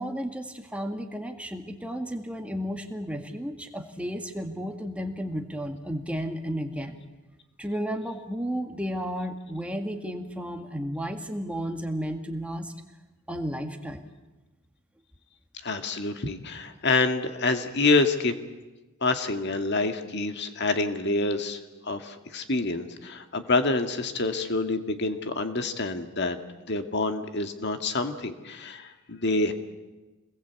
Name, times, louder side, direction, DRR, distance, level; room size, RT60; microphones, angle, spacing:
voice 1, 0.0-7.0 7.6-12.7 13.3-14.1, equal, 5° right, 4 dB, 1.8 m, -33 dB
voice 2, 15.6-18.3 19.0-26.4 26.7-29.5, left 3 dB, 50° left, 7 dB, 1.9 m, -27 dB
26.5 x 20.5 x 8.3 m, 1.2 s
head